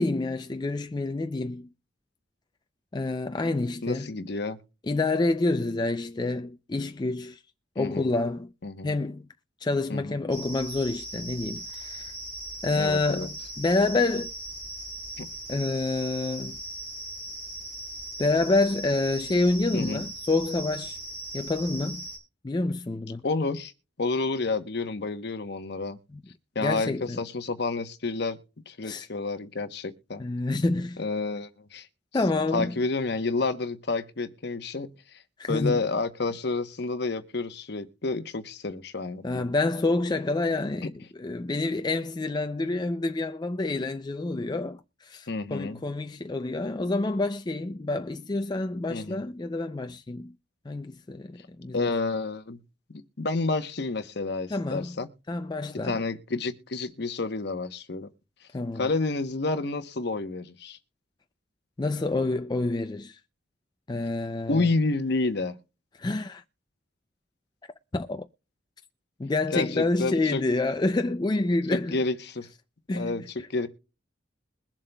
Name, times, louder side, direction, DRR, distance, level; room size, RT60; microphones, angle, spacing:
voice 1, 0.0-1.7 2.9-4.1 4.9-7.4 7.8-8.5 8.8-9.3 9.6-12.1 12.6-14.3 15.5-16.6 18.2-21.0 21.3-22.0 22.4-23.2 26.6-27.2 28.8-29.1 30.2-31.0 32.1-32.7 35.4-35.8 39.2-50.4 50.7-51.9 54.5-54.9 55.3-56.0 58.5-58.9 61.8-63.2 63.9-64.7 66.0-66.4 67.9-68.3 69.2-72.0 72.9-73.1, left 2 dB, 20° left, 0.4 m, -28 dB
voice 2, 3.8-4.6 7.8-8.1 8.6-9.0 9.9-10.2 12.7-13.3 15.2-15.3 19.7-20.0 23.2-23.7 24.0-26.0 26.5-28.4 28.7-30.2 31.0-31.9 32.3-35.2 35.5-39.4 40.8-40.9 45.3-45.8 48.9-49.2 51.7-52.6 52.9-55.1 55.8-58.1 58.7-60.8 64.5-65.5 69.5-70.4 71.7-72.5 72.9-73.7, left 3 dB, 60° left, 0.9 m, -30 dB
sound 1, 10.3-22.2, right 1 dB, 65° right, 3.4 m, -39 dB
22.0 x 7.4 x 2.2 m
head